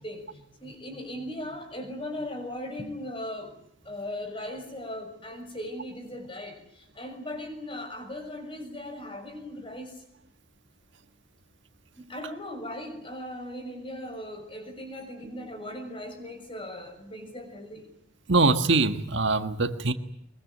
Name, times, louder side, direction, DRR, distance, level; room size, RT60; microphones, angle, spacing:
voice 1, 0.0-3.6 3.8-10.0 12.0-17.9, left 1 dB, 25° left, 6.2 m, -38 dB
voice 2, 18.3-19.9, right 3 dB, 65° right, 1.6 m, -23 dB
23.5 x 22.5 x 9.3 m
head